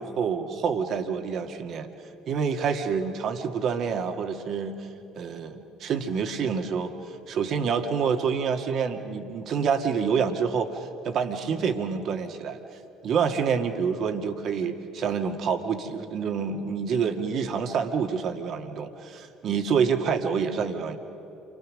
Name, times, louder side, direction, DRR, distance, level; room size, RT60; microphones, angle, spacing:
voice 1, 0.0-1.9 2.3-4.8 5.2-6.9 7.3-12.6 13.0-21.0, right 6 dB, 50° right, 6 dB, 2.0 m, -27 dB
30.0 x 25.0 x 6.4 m, 3.0 s
figure-of-eight pair, 60°, 0 cm